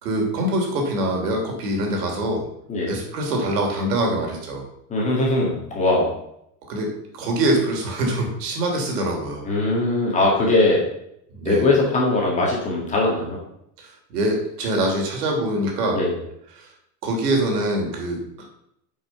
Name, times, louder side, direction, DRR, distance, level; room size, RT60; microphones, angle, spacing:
voice 1, 0.0-2.5 2.9-4.7 6.7-9.4 11.3-11.7 13.8-16.0 16.5-16.7 17.0-18.2, right 1 dB, 70° right, 1 dB, 3.1 m, -24 dB
voice 2, 4.9-6.1 9.5-10.9 11.5-13.4 15.9-16.2, left 2 dB, 15° left, -2 dB, 1.8 m, -20 dB
8.6 x 5.5 x 5.7 m, 0.76 s
supercardioid pair, 170°, 48 cm